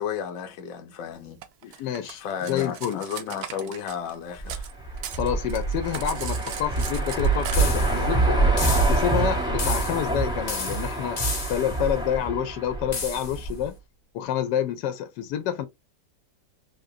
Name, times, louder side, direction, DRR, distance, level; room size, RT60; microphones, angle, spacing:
voice 1, 0.0-1.4 1.7-1.8 2.1-4.7, left 8 dB, 60° left, 0.9 m, -33 dB
Cutlery silverware, 1.4-4.7 5.0-7.6, right 9 dB, 70° right, 1.0 m, -38 dB
voice 2, 1.6-3.0 5.1-8.5 8.9-11.2 11.5-13.7 14.1-15.7, left 10 dB, 80° left, 1.2 m, -28 dB
sound 1, 4.4-13.6, right 3 dB, 5° right, 0.6 m, -25 dB
sound 2, 7.5-8.1 8.6-9.2 9.6-10.2 10.5-11.8 12.9-13.4, left 4 dB, 45° left, 0.5 m, -32 dB
3.7 x 2.5 x 2.6 m
omnidirectional pair, 1.9 m